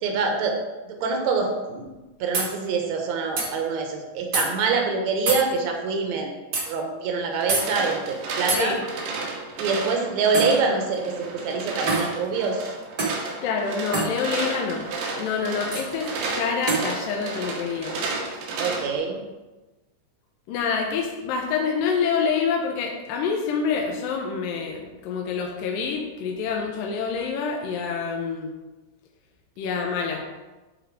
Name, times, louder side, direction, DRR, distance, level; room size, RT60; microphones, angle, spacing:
voice 1, 0.0-0.6 0.9-1.9 2.2-6.3 6.6-8.7 9.6-12.7 18.6-19.2, right 4 dB, 65° right, 3 dB, 2.0 m, -25 dB
sound 1, 1.9-2.0 2.3-2.5 3.4-3.5 4.3-4.5 5.3-5.4 6.5-6.7 7.5-7.7 8.5-8.6 10.3-10.6 11.9-12.1 13.0-13.2 13.9-14.1 15.7-15.9 16.7-16.9, right 3 dB, 50° right, 1.2 m, -25 dB
sound 2, 7.3-18.9, right 3 dB, 85° right, 3.1 m, -32 dB
voice 2, 13.4-14.9 15.2-18.0 20.5-28.5 29.6-30.2, left 5 dB, 80° left, 1 dB, 2.5 m, -27 dB
11.0 x 4.2 x 4.7 m, 1.1 s
omnidirectional pair, 4.0 m